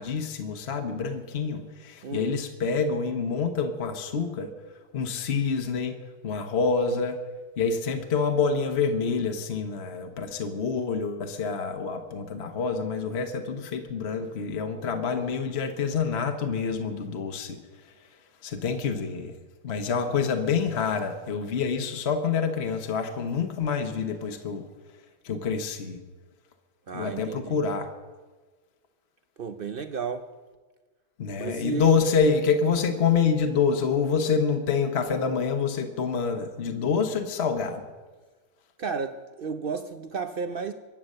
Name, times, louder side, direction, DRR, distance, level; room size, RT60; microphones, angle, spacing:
voice 1, 0.0-4.5 4.9-7.2 7.6-17.6 18.4-19.3 19.6-24.7 25.2-26.0 26.9-27.9 31.2-37.8, left 5 dB, 40° left, 5 dB, 1.2 m, -27 dB
voice 2, 2.0-2.3 26.9-27.6 29.4-30.3 31.4-32.0 38.8-40.7, right 5 dB, 85° right, 9 dB, 0.4 m, -32 dB
24.0 x 8.8 x 6.6 m, 1.3 s
omnidirectional pair, 1.8 m